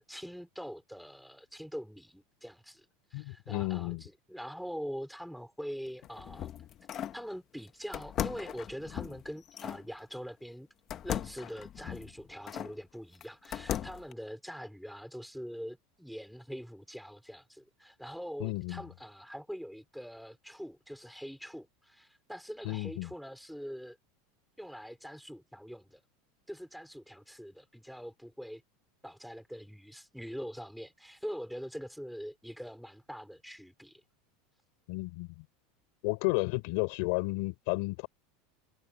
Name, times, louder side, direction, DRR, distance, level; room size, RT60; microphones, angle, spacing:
voice 1, 0.0-2.9 3.1-6.6 6.9-10.7 11.0-24.0 24.6-26.0 26.5-28.6 29.0-34.0, equal, ahead, 3.7 m, -43 dB
voice 2, 3.1-4.0 18.4-18.8 22.6-23.1 34.9-35.4 36.0-38.1, left 25 dB, 50° left, 3.4 m, -32 dB
sound 1, 5.9-7.2 7.9-9.8 10.9-12.7 13.2-14.1, left 10 dB, 25° left, 0.9 m, -38 dB
supercardioid pair, 175°, 0 cm